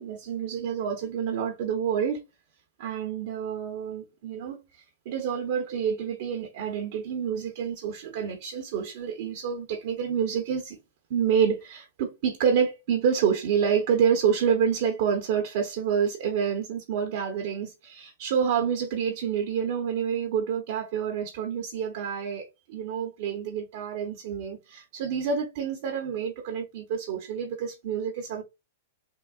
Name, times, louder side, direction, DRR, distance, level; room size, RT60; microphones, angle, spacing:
voice 1, 0.0-2.2 2.8-10.8 11.1-28.4, right 7 dB, 55° right, 0.6 m, -28 dB
3.6 x 2.1 x 2.3 m
hypercardioid pair, 110°, 0 cm